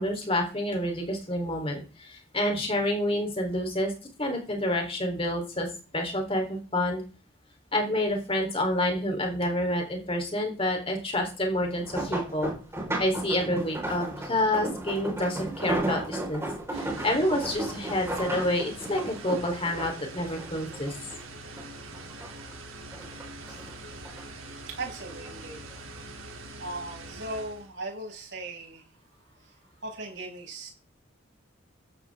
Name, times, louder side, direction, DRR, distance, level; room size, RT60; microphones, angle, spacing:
voice 1, 0.0-3.9 4.2-5.7 5.9-7.0 7.7-12.5 13.0-16.4 16.7-21.0, left 1 dB, 30° left, 3 dB, 3.9 m, -28 dB
sound 1, 11.6-21.2 21.6-22.5 22.9-24.2 25.0-25.3 25.7-25.8, right 1 dB, 15° right, 4.9 m, -34 dB
sound 2, 16.7-27.7, right 2 dB, 90° right, 3.3 m, -43 dB
voice 2, 24.7-25.6 26.6-28.9 29.4-30.7, right 2 dB, 60° right, 0 dB, 6.9 m, -38 dB
16.0 x 11.0 x 3.7 m, 0.35 s
head